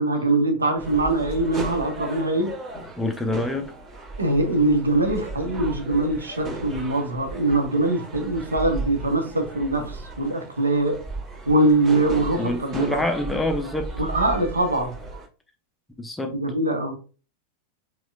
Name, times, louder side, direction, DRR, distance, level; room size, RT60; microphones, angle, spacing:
voice 1, 0.0-2.5 4.2-11.0 11.5-13.0 14.0-14.9 16.3-16.9, right 2 dB, 75° right, 0.7 m, -22 dB
sound 1, 0.8-15.2, right 2 dB, 30° right, 1.5 m, -36 dB
voice 2, 3.0-3.7 12.4-13.9 16.0-16.4, left 1 dB, 5° left, 0.4 m, -26 dB
4.2 x 2.2 x 2.4 m
figure-of-eight pair, 90°, 0 cm